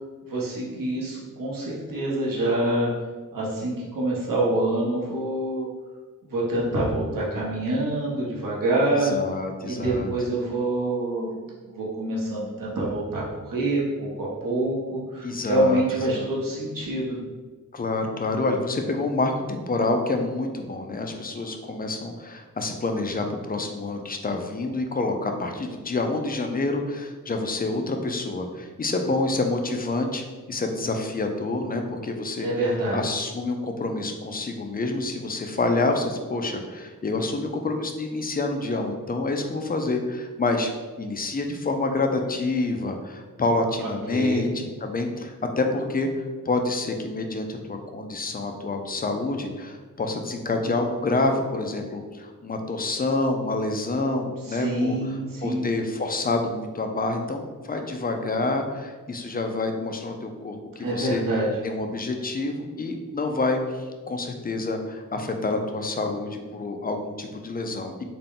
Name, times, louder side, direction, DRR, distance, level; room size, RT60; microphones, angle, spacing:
voice 1, 0.3-2.9 3.3-5.7 6.2-9.1 9.6-11.3 11.7-17.2 32.4-33.0 43.8-44.5 54.4-55.6 60.8-61.6, right 1 dB, 80° right, -5 dB, 1.0 m, -26 dB
voice 2, 8.8-10.1 15.2-15.8 16.1-16.3 17.7-32.5 32.9-40.7 41.0-46.1 46.5-55.0 55.4-61.2 61.6-67.9, left 2 dB, 30° left, 4 dB, 0.4 m, -27 dB
3.8 x 2.2 x 3.6 m, 1.3 s
wide cardioid pair, 95°, 33 cm